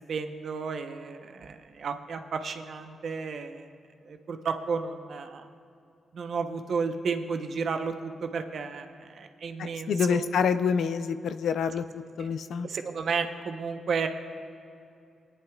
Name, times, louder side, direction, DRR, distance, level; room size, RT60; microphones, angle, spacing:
voice 1, 0.1-3.7 4.0-5.5 6.1-10.3 12.2-12.3 12.6-14.1, right 5 dB, 70° right, 6 dB, 0.8 m, -32 dB
voice 2, 9.6-12.7, left 6 dB, 80° left, 11 dB, 0.4 m, -27 dB
24.0 x 10.0 x 2.3 m, 2.5 s
cardioid pair, 60°, 0 cm